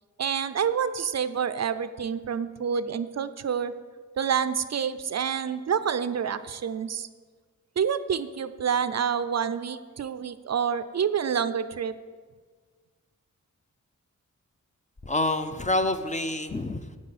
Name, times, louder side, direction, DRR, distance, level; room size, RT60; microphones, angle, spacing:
voice 1, 0.2-3.7 4.2-7.1 7.8-11.9, right 7 dB, 60° right, 13 dB, 0.5 m, -28 dB
voice 2, 15.0-17.0, left 2 dB, 25° left, 8 dB, 0.5 m, -27 dB
9.4 x 8.6 x 4.1 m, 1.5 s
wide cardioid pair, 80°, 31 cm